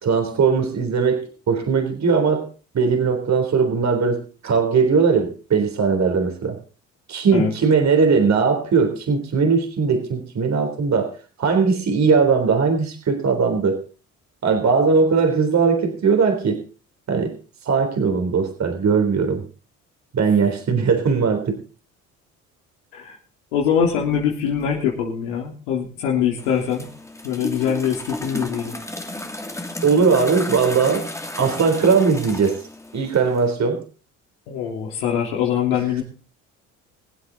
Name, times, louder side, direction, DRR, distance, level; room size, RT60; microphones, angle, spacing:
voice 1, 0.0-2.5 2.7-6.6 7.1-13.8 14.4-16.6 17.1-17.4 17.6-19.4 20.1-21.6 29.8-31.1 31.4-32.6 32.9-33.8, right 5 dB, 45° right, 5 dB, 3.7 m, -19 dB
voice 2, 23.5-26.9 27.2-28.8 34.5-36.0, left 8 dB, 90° left, -2 dB, 3.5 m, -23 dB
sound 1, 26.4-33.5, left 1 dB, 10° left, 2.6 m, -33 dB
24.0 x 8.0 x 4.0 m, 0.37 s
supercardioid pair, 70°, 37 cm